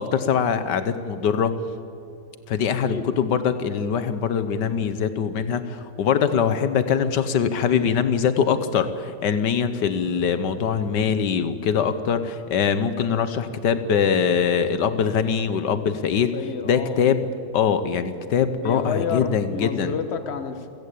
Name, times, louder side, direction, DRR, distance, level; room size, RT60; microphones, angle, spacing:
voice 1, 0.0-1.6 2.5-16.3 16.6-17.3 17.5-19.9, left 7 dB, 85° left, 11 dB, 1.7 m, -23 dB
voice 2, 2.6-3.1 16.3-17.0 18.6-20.7, left 6 dB, 40° left, 9 dB, 1.5 m, -30 dB
29.0 x 15.5 x 8.5 m, 2.5 s
omnidirectional pair, 1.8 m